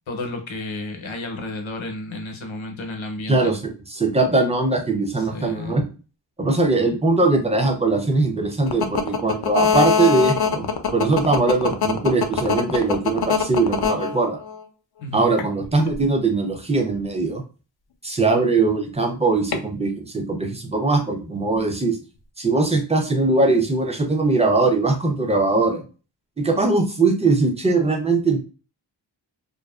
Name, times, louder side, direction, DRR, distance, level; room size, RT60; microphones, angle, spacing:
voice 1, 0.1-3.5 5.3-5.8 15.0-15.3, left 2 dB, 80° left, 4 dB, 0.8 m, -32 dB
voice 2, 3.3-5.8 6.4-14.4 15.1-17.4 18.0-22.0 22.4-25.8 26.4-28.4, right 3 dB, 15° right, 3 dB, 0.6 m, -21 dB
sound 1, 8.7-14.6 15.4-16.0 19.5-19.6, left 7 dB, 55° left, 0.5 m, -21 dB
2.5 x 2.4 x 2.3 m, 0.34 s
wide cardioid pair, 90°, 47 cm